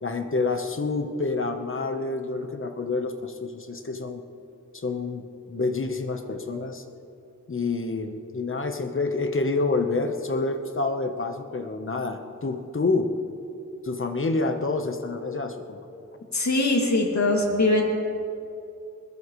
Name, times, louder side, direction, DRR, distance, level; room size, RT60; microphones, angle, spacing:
voice 1, 0.0-4.2 4.7-6.8 7.5-13.1 13.8-15.8, left 3 dB, 40° left, 6 dB, 1.1 m, -28 dB
voice 2, 16.3-17.8, left 2 dB, 60° left, 0 dB, 2.5 m, -22 dB
21.0 x 20.5 x 3.2 m, 2.7 s
wide cardioid pair, 120°, 31 cm